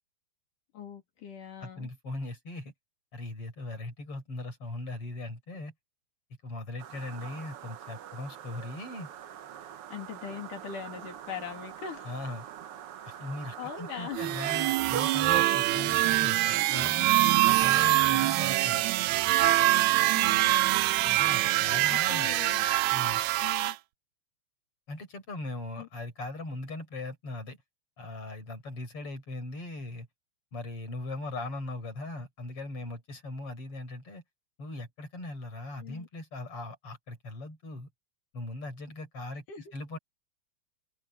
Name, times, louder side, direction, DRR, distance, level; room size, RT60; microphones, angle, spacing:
voice 1, 0.7-1.9 9.9-12.1 13.6-14.2 20.1-20.8 21.9-22.7 23.4-23.8 25.8-25.9 35.8-36.1 39.5-39.7, left 8 dB, 70° left, 4.4 m, -41 dB
voice 2, 1.6-2.7 3.1-5.7 6.4-9.1 12.0-12.5 13.0-16.4 16.7-18.8 21.0-22.4 22.9-23.2 24.9-27.6 28.0-30.1 30.5-34.2 34.6-37.9 38.3-40.0, left 2 dB, 40° left, 6.6 m, -39 dB
sound 1, 6.8-15.4, right 10 dB, 65° right, 1.5 m, -41 dB
sound 2, 14.1-23.7, right 17 dB, 80° right, 1.7 m, -24 dB
open air
omnidirectional pair, 3.8 m